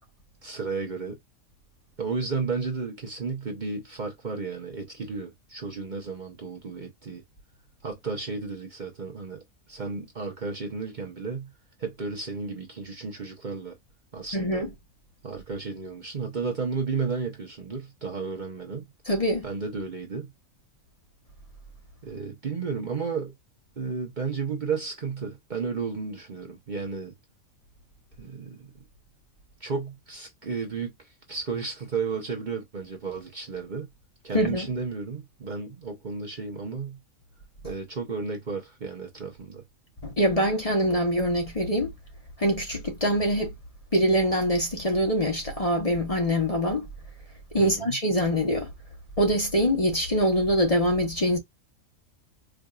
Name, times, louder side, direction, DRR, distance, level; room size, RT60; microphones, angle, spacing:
voice 1, 0.4-1.2 2.0-7.2 7.8-9.4 9.7-11.5 11.8-13.8 14.1-14.6 15.2-18.8 19.4-20.3 22.0-23.3 23.8-27.1 28.2-28.7 29.6-33.9 34.2-37.0 37.6-39.6 47.6-48.0, right 4 dB, 40° right, 1.0 m, -33 dB
voice 2, 14.3-14.7 19.1-19.5 34.3-34.7 40.0-41.9 42.4-43.5 43.9-46.9 47.5-48.7 49.2-51.4, equal, 30° left, 1.0 m, -24 dB
4.8 x 2.6 x 2.3 m
omnidirectional pair, 1.3 m